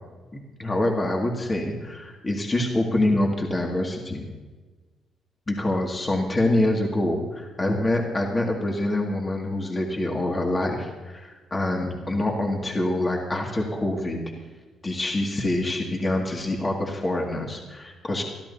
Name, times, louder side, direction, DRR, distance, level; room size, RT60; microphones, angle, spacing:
voice 1, 0.6-4.2 5.5-14.2 14.8-18.2, left 1 dB, 25° left, 0 dB, 2.2 m, -25 dB
22.5 x 13.5 x 2.8 m, 1.3 s
cardioid pair, 90°, 0 cm